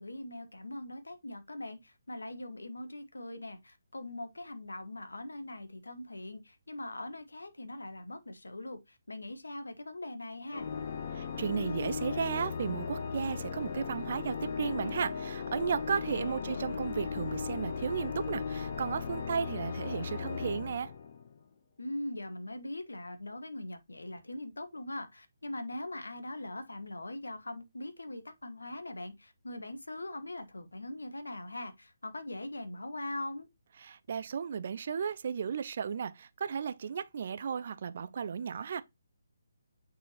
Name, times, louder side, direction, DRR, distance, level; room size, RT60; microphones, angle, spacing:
voice 1, 0.0-10.7 16.1-16.9 21.8-33.5, left 1 dB, 70° left, 1.3 m, -41 dB
Organ, 10.5-21.4, left 5 dB, 45° left, 1.1 m, -37 dB
voice 2, 11.1-20.9 33.8-38.8, right 6 dB, 45° right, 0.6 m, -34 dB
8.5 x 4.1 x 2.9 m
figure-of-eight pair, 140°, 0 cm